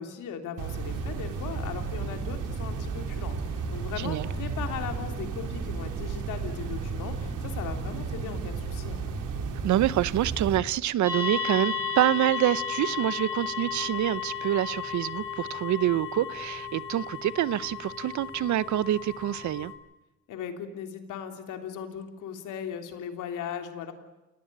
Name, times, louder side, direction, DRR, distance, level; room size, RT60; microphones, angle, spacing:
voice 1, 0.0-3.4 3.7-9.0 20.3-23.9, left 8 dB, 85° left, 3.3 m, -38 dB
sound 1, 0.6-10.6, right 5 dB, 90° right, 3.5 m, -33 dB
voice 2, 4.0-4.3 9.6-19.7, right 13 dB, 70° right, 0.8 m, -26 dB
sound 2, 11.0-19.7, left 6 dB, 5° right, 7.2 m, -34 dB
29.5 x 17.5 x 8.7 m
cardioid pair, 90°, 30 cm